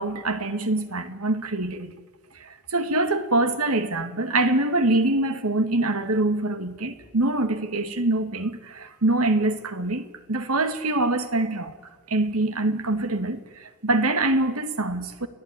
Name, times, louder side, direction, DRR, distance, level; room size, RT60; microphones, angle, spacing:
voice 1, 0.0-1.9 2.3-11.8 12.1-15.3, right 2 dB, 75° right, 2.3 m, -24 dB
30.0 x 17.5 x 9.9 m
head